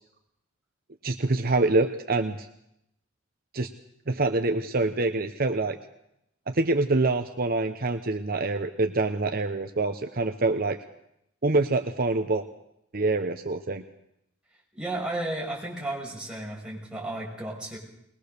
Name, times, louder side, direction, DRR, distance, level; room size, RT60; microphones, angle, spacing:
voice 1, 1.0-2.5 3.5-3.7 4.1-5.8 6.5-10.8 11.4-12.5 12.9-13.8, right 2 dB, 50° right, 7 dB, 1.0 m, -25 dB
voice 2, 14.7-17.8, right 2 dB, 5° right, -4 dB, 6.1 m, -33 dB
21.0 x 21.0 x 6.8 m, 0.80 s
head